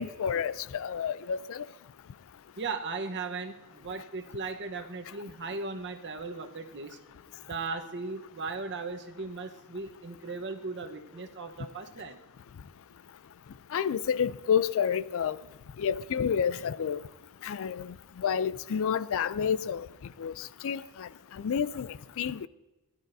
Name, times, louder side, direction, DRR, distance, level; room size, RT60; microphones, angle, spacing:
voice 1, 0.0-1.6 13.7-15.4 15.8-17.0 17.4-19.9 20.2-21.1 21.4-22.5, left 7 dB, 65° left, 0.4 m, -30 dB
voice 2, 2.6-7.0 7.4-12.2, right 4 dB, 55° right, 1.1 m, -37 dB
17.0 x 11.5 x 2.7 m
head